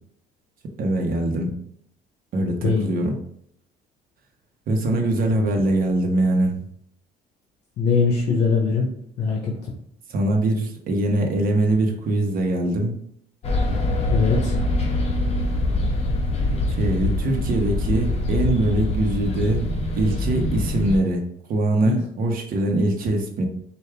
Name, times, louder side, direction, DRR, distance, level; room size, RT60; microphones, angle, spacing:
voice 1, 0.8-1.5 2.3-3.2 4.7-6.6 10.1-13.0 16.7-19.7 19.9-21.2 21.5-23.5, right 1 dB, 60° right, 2 dB, 1.1 m, -22 dB
voice 2, 2.6-2.9 7.8-8.9 9.2-9.5 14.1-14.5 21.8-22.0, left 5 dB, 70° left, -1 dB, 0.9 m, -21 dB
sound 1, 13.4-21.0, left 2 dB, 40° left, 1.1 m, -24 dB
4.9 x 2.6 x 3.4 m, 0.68 s
cardioid pair, 110°, 17 cm